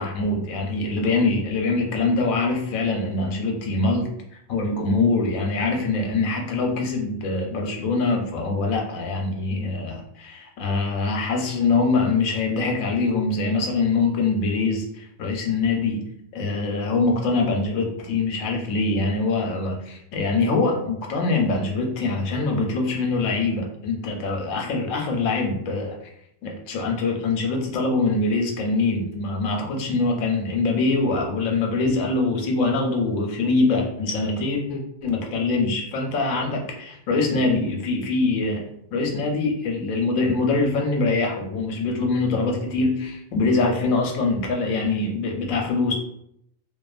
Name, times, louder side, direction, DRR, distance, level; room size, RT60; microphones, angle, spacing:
voice 1, 0.0-4.1 4.5-26.0 26.4-38.6 38.9-46.0, left 3 dB, 85° left, 2 dB, 1.0 m, -24 dB
2.5 x 2.3 x 2.3 m, 0.74 s
omnidirectional pair, 1.4 m